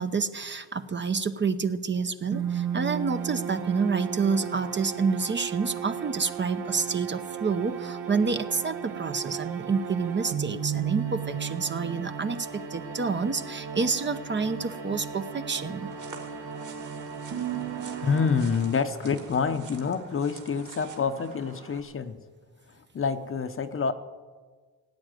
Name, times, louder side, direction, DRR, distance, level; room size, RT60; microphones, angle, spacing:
voice 1, 0.0-15.9, right 5 dB, 25° right, 9 dB, 0.8 m, -28 dB
sound 1, 2.3-19.1, right 8 dB, 75° right, 1.9 m, -35 dB
sound 2, 15.8-21.8, right 5 dB, 50° right, 2.5 m, -47 dB
voice 2, 18.0-22.2 22.9-23.9, left 5 dB, 30° left, 10 dB, 0.9 m, -27 dB
17.5 x 9.0 x 9.1 m, 1.5 s
cardioid pair, 110°, 40 cm